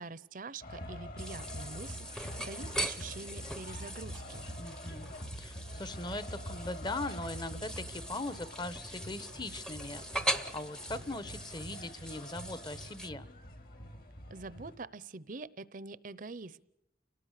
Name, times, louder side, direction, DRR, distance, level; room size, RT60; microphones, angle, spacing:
voice 1, 0.0-4.4 14.3-16.6, right 3 dB, 50° right, 18 dB, 0.8 m, -45 dB
sound 1, 0.6-14.8, equal, 55° left, 3.0 m, -45 dB
sound 2, 1.2-13.1, equal, 5° left, 0.8 m, -41 dB
voice 2, 4.6-5.1 5.4-13.3, left 2 dB, 25° left, 14 dB, 1.1 m, -40 dB
29.5 x 19.0 x 6.7 m, 0.86 s
head